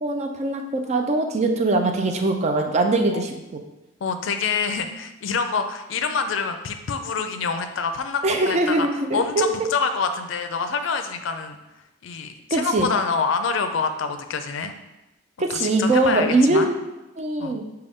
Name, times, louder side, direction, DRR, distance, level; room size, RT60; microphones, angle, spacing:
voice 1, 0.0-3.6 8.2-9.7 12.5-12.9 15.4-16.8 17.2-17.6, right 2 dB, 35° right, 5 dB, 0.4 m, -22 dB
voice 2, 4.0-8.9 9.1-11.6 12.0-14.7 15.5-16.7 17.4-17.6, left 5 dB, 70° left, 7 dB, 0.4 m, -26 dB
6.3 x 2.3 x 3.5 m, 0.99 s
head